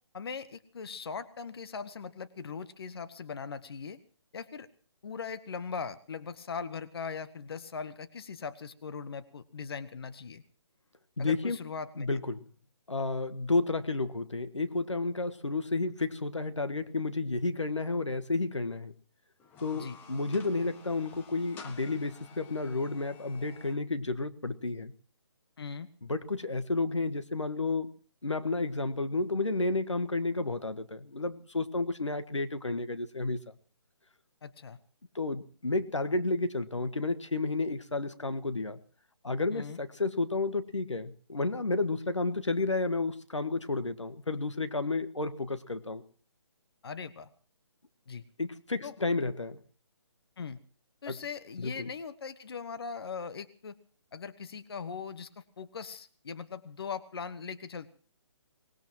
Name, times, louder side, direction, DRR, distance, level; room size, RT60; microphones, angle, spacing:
voice 1, 0.1-4.0 4.3-4.7 5.0-10.4 11.2-12.1 19.7-20.0 25.6-25.9 34.4-34.8 39.5-39.8 46.8-47.3 48.1-48.2 48.8-48.9 50.4-50.6 51.0-53.8 54.1-57.9, left 5 dB, 55° left, 11 dB, 1.2 m, -40 dB
voice 2, 11.2-11.6 12.0-12.4 12.9-18.9 19.6-24.9 26.0-27.9 28.2-33.5 35.1-38.8 39.2-46.0 48.4-49.6 51.1-51.2 51.6-51.9, left 3 dB, 85° left, 10 dB, 1.5 m, -31 dB
sound 1, 19.4-23.8, left 6 dB, 10° left, 1.3 m, -52 dB
24.5 x 20.0 x 3.0 m, 0.43 s
figure-of-eight pair, 145°, 15 cm